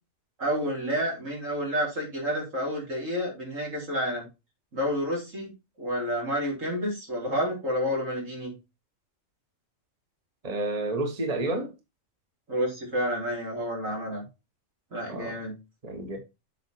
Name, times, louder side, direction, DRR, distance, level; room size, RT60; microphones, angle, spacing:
voice 1, 0.4-4.2 4.7-5.5 5.8-8.5 12.5-14.2 14.9-15.6, equal, 75° right, 4.4 m, -29 dB
voice 2, 10.4-11.7 15.1-15.4 15.8-16.2, right 2 dB, 30° right, 1.4 m, -30 dB
7.8 x 4.9 x 4.7 m
omnidirectional pair, 1.4 m